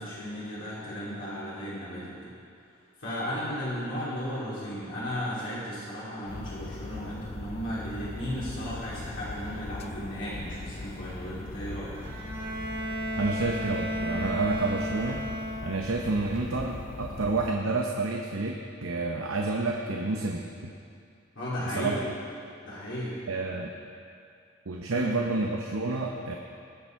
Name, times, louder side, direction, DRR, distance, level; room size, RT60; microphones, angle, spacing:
voice 1, 0.0-2.1 3.0-11.9 21.3-22.0 22.6-23.2 23.5-23.6 24.9-25.1, equal, 65° left, -9 dB, 2.9 m, -35 dB
sound 1, 6.3-17.5, left 3 dB, 30° left, 0.3 m, -41 dB
sound 2, 6.8-7.4 9.4-10.0 11.9-12.5 14.2-15.0 16.2-16.9, right 1 dB, 55° right, 1.4 m, -50 dB
Bowed string instrument, 11.9-16.0, equal, 25° right, 1.7 m, -33 dB
voice 2, 13.1-15.2 15.6-20.5 21.6-22.0 23.3-23.7 24.7-26.4, right 3 dB, 90° right, 1 dB, 0.8 m, -29 dB
19.5 x 7.0 x 4.6 m, 2.4 s
head